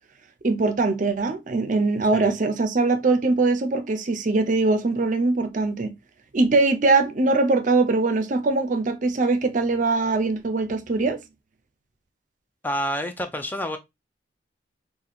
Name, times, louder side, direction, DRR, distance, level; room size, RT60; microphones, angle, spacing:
voice 1, 0.4-5.9 6.3-11.2, right 3 dB, 45° right, 0.5 m, -22 dB
voice 2, 12.6-13.8, equal, 10° left, 0.4 m, -28 dB
2.7 x 2.5 x 4.1 m
head